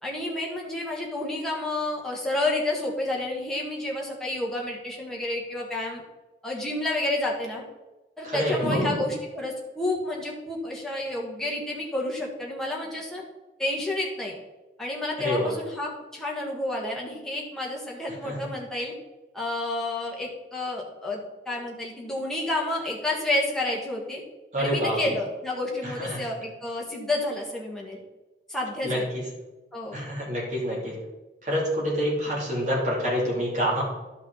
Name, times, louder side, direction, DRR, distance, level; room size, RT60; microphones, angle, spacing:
voice 1, 0.0-6.0 6.4-7.6 8.2-13.2 13.6-14.3 14.8-18.9 19.3-24.2 24.6-28.0 28.5-29.1 29.7-30.0, left 2 dB, 5° left, -3 dB, 1.7 m, -30 dB
voice 2, 8.2-8.9 15.2-15.5 18.2-18.4 24.5-25.0 25.8-26.2 28.8-29.0 29.9-30.9 31.4-33.8, equal, 40° right, -4 dB, 2.8 m, -27 dB
11.5 x 5.7 x 4.0 m, 1.1 s
head